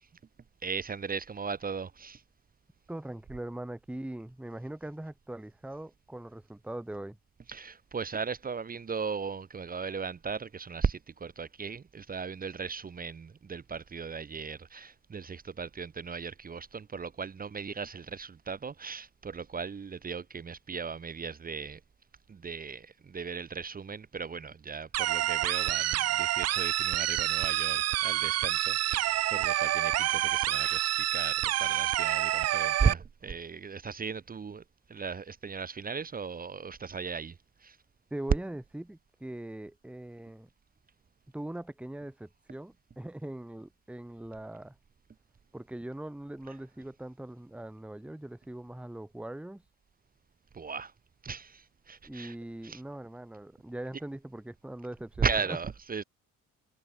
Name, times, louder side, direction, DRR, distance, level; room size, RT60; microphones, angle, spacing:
voice 1, 0.6-2.2 7.5-21.8 22.3-34.6 34.9-37.3 37.6-37.8 50.5-50.9 51.2-52.3 52.6-52.8 55.2-56.0, right 5 dB, 30° right, 1.2 m, -36 dB
voice 2, 2.9-7.2 38.1-40.5 41.3-44.8 45.5-49.6 52.0-55.6, right 1 dB, 5° right, 1.3 m, -41 dB
sound 1, 24.9-32.9, right 14 dB, 55° right, 0.6 m, -28 dB
cardioid pair, 105°, 31 cm